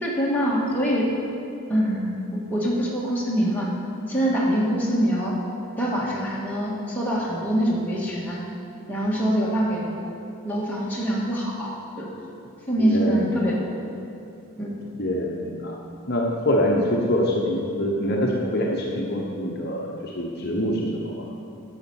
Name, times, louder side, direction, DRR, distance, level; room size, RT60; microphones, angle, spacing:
voice 1, 0.0-1.1 1.7-3.7 4.0-5.4 5.7-8.4 8.9-10.1 10.4-12.1 12.7-13.8 14.6-14.7, equal, 10° left, -6 dB, 1.8 m, -24 dB
voice 2, 12.8-13.3 15.0-15.7 16.1-21.2, left 1 dB, 45° left, -2 dB, 1.0 m, -25 dB
10.0 x 6.6 x 7.1 m, 2.7 s
head